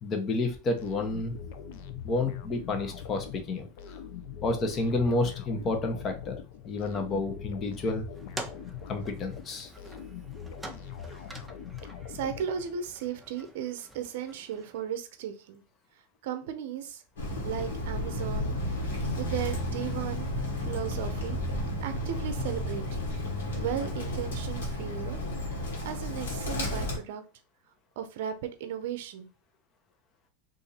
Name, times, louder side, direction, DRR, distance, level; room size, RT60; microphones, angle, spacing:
voice 1, 0.0-1.4 2.0-4.0 4.4-6.4 6.6-8.1 8.9-9.7, left 2 dB, 30° left, 0.9 m, -30 dB
sound 1, 0.8-13.0, left 8 dB, 65° left, 0.5 m, -42 dB
sound 2, 8.1-14.9, right 2 dB, 10° right, 0.6 m, -46 dB
voice 2, 12.1-15.6 16.2-17.0 17.4-18.9 19.2-20.3 20.6-21.4 21.8-23.0 23.5-25.2 25.8-27.2 28.0-29.3, right 9 dB, 70° right, 0.5 m, -36 dB
Bird, 17.2-27.0, left 1 dB, 85° left, 1.3 m, -32 dB
2.7 x 2.6 x 4.0 m
hypercardioid pair, 110°, 0 cm